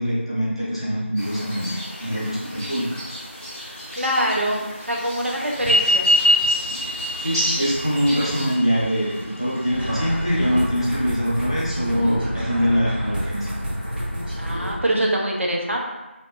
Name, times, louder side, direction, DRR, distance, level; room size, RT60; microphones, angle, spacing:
voice 1, 0.0-1.7 2.0-2.9 7.2-13.5, equal, 25° left, -8 dB, 0.6 m, -23 dB
sound 1, 1.2-8.5, equal, 20° right, 0.6 m, -33 dB
voice 2, 3.9-6.1 11.9-12.2 14.4-15.8, right 1 dB, 80° right, -1 dB, 0.6 m, -24 dB
sound 2, 5.6-10.6, left 1 dB, 70° left, 0.5 m, -23 dB
sound 3, 9.7-14.7, equal, 50° right, 0.9 m, -29 dB
2.7 x 2.6 x 2.2 m, 1.0 s
figure-of-eight pair, 180°, 7 cm